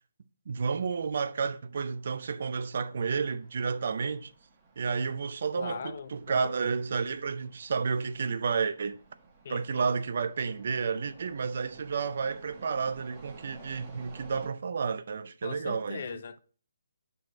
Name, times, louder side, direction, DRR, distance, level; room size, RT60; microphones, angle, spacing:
voice 1, 0.5-4.3 4.8-9.0 9.5-16.0, right 5 dB, 50° right, 0.4 m, -31 dB
sound 1, 3.4-14.5, right 4 dB, 20° right, 1.2 m, -54 dB
voice 2, 5.5-6.5 9.4-9.9 15.4-16.4, left 6 dB, 45° left, 0.5 m, -40 dB
7.6 x 4.1 x 4.2 m
figure-of-eight pair, 145°, 0 cm